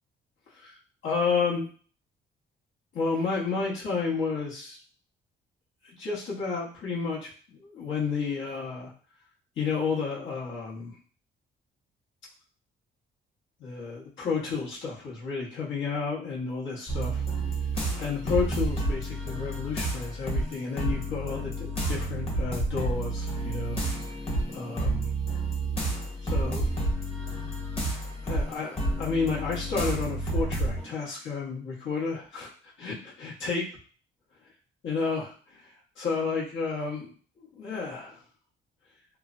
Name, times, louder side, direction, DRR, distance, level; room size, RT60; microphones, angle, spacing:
voice 1, 1.0-1.7 2.9-4.8 5.8-8.9 9.6-11.0 13.6-17.2 18.0-23.8 24.5-25.1 26.2-26.7 28.2-32.5 32.8-33.7 34.8-38.2, left 5 dB, 70° left, -5 dB, 1.1 m, -31 dB
sound 1, 16.9-30.9, right 2 dB, 30° left, 1.0 m, -30 dB
3.1 x 2.1 x 2.5 m, 0.43 s
cardioid pair, 90°, 20 cm